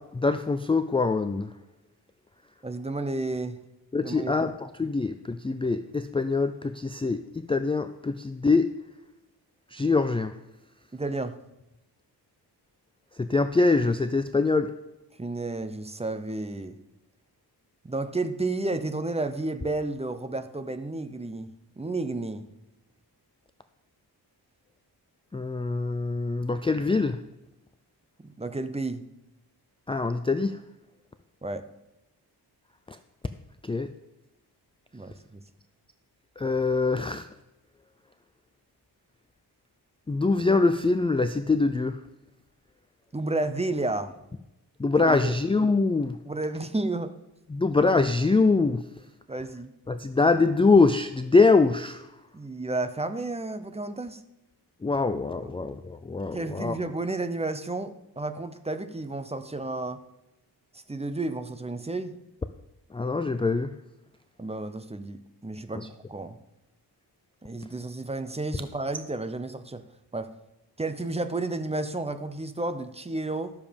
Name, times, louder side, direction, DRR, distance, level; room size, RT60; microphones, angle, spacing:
voice 1, 0.0-1.5 3.9-8.7 9.7-10.4 13.2-14.7 25.3-27.2 29.9-30.6 32.9-33.0 33.6-33.9 36.4-37.3 40.1-42.0 44.8-46.2 47.5-48.8 49.9-52.1 54.8-56.8 62.9-63.7 65.7-65.9, left 3 dB, 15° left, 9 dB, 0.4 m, -24 dB
voice 2, 2.6-3.6 4.0-4.4 10.9-11.4 15.2-16.8 17.8-21.5 21.8-22.5 28.2-29.0 31.4-31.7 34.9-35.4 43.1-44.1 45.0-45.3 46.3-47.2 49.3-49.7 52.3-54.2 55.4-55.5 56.3-60.0 60.7-62.1 64.4-66.4 67.4-69.8 70.1-70.3 70.8-73.5, right 2 dB, 15° right, 10 dB, 0.7 m, -32 dB
12.5 x 7.1 x 5.2 m, 0.92 s
wide cardioid pair, 100°, 41 cm